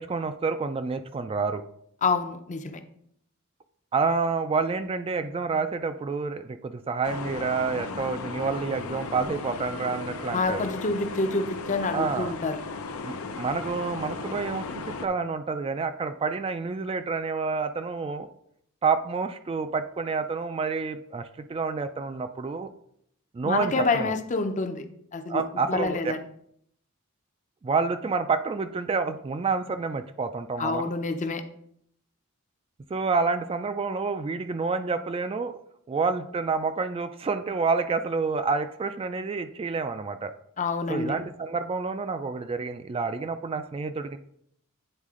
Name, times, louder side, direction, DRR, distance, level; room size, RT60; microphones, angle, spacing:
voice 1, 0.0-1.6 3.9-10.7 11.9-12.3 13.0-18.3 18.8-22.7 23.3-24.1 25.3-26.1 27.6-30.8 32.9-35.6 35.9-40.3 40.9-44.2, right 4 dB, 25° right, 9 dB, 0.3 m, -28 dB
voice 2, 2.0-2.8 10.3-12.6 23.4-25.4 25.7-26.2 30.6-31.4 40.6-41.2, left 3 dB, 35° left, 8 dB, 0.6 m, -27 dB
sound 1, 7.0-15.1, left 4 dB, 85° left, 0.6 m, -36 dB
9.0 x 4.1 x 3.6 m, 0.70 s
head